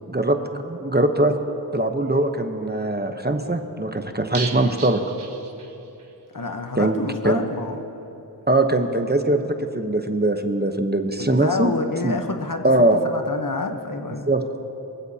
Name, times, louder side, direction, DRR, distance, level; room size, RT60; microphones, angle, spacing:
voice 1, 0.1-1.3 1.7-5.0 6.7-7.0 7.2-7.4 8.5-11.7 12.0-12.2 12.6-13.0 14.2-14.6, right 2 dB, 25° right, 6 dB, 0.9 m, -21 dB
sound 1, 4.3-6.1 6.4-6.5 6.8-6.9, right 4 dB, 90° right, 1.0 m, -35 dB
voice 2, 6.3-7.8 11.2-12.7 13.0-14.3, left 3 dB, 55° left, 5 dB, 1.0 m, -28 dB
23.0 x 15.5 x 2.8 m, 3.0 s
wide cardioid pair, 50°, 40 cm